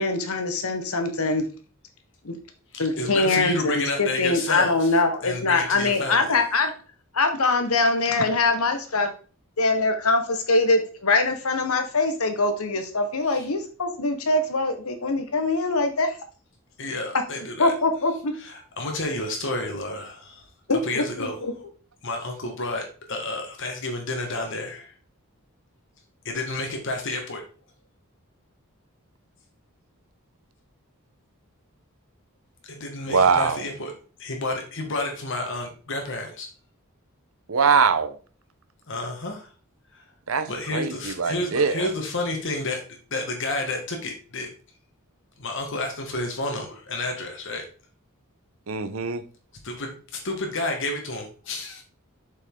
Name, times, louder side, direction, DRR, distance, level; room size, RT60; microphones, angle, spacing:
voice 1, 0.0-1.4 2.2-2.4 2.8-6.7 7.1-9.1 9.6-16.2 17.1-17.2 17.6-18.3 20.7-21.5, left 3 dB, 90° left, 7 dB, 1.3 m, -23 dB
voice 2, 2.7-4.9 5.2-6.4 13.3-13.5 16.8-17.7 18.4-20.5 20.8-21.4 22.0-24.9 26.2-27.4 32.6-33.9 34.2-36.5 38.9-39.5 39.9-40.0 40.5-42.8 43.1-44.5 45.4-47.6 49.6-51.8, left 2 dB, 60° left, 3 dB, 1.6 m, -30 dB
voice 3, 33.1-33.6 37.5-38.2 40.3-41.9 48.7-49.2, right 5 dB, 70° right, 10 dB, 0.9 m, -22 dB
7.2 x 5.5 x 3.8 m, 0.38 s
head